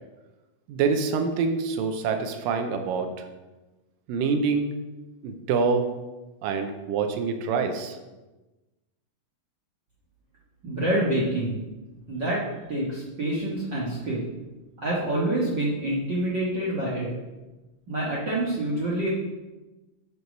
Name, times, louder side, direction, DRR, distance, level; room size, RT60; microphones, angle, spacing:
voice 1, 0.7-3.1 4.1-4.7 5.2-5.9 6.4-8.0, right 5 dB, 85° right, 6 dB, 2.4 m, -26 dB
voice 2, 10.6-11.6 12.1-12.4 12.7-14.2 14.8-17.1 17.9-19.1, right 1 dB, 50° right, -6 dB, 1.4 m, -27 dB
8.2 x 4.7 x 6.3 m, 1.1 s
omnidirectional pair, 4.0 m